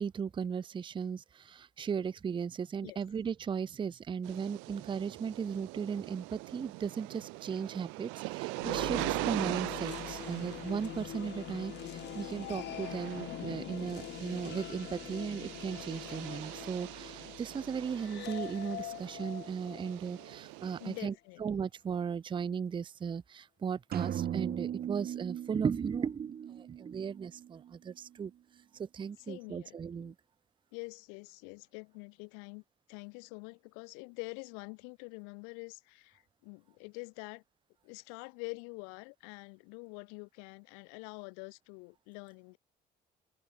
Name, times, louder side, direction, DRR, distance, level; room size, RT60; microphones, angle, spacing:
voice 1, 0.0-21.1 21.4-28.3 28.7-30.1, right 6 dB, 25° right, 0.4 m, -36 dB
sound 1, 4.2-21.0, right 27 dB, 80° right, 0.5 m, -42 dB
sound 2, 8.6-20.7, left 13 dB, 60° left, 0.9 m, -44 dB
voice 2, 20.8-21.4 29.2-30.1 30.7-32.6 32.9-37.4 37.8-42.6, left 40 dB or more, 85° left, 1.1 m, -46 dB
sound 3, 23.9-27.7, right 10 dB, 50° right, 1.0 m, -38 dB
supercardioid pair, 65°, 20 cm